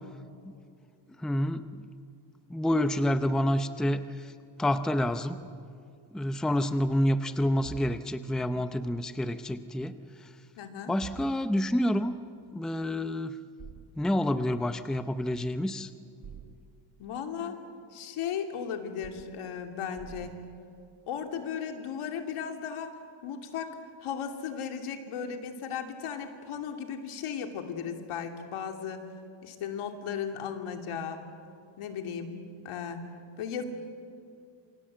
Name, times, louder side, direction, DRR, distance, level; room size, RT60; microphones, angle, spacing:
voice 1, 1.2-1.9 2.5-4.3 4.6-5.4 6.1-10.0 10.9-12.2 12.5-13.3 14.0-15.9, left 1 dB, ahead, 10 dB, 0.6 m, -28 dB
sound 1, 7.6-7.9 11.0-11.3 13.6-13.9 16.2-16.6 19.0-19.2 20.0-20.5, right 8 dB, 40° right, 1.6 m, -45 dB
voice 2, 10.6-10.9 17.0-17.6 17.9-20.4 21.1-29.1 29.4-31.2 31.8-32.4 32.6-33.0 33.4-33.6, left 7 dB, 80° left, 5 dB, 2.9 m, -36 dB
28.0 x 25.5 x 7.6 m, 2.5 s
cardioid pair, 160°, 50 cm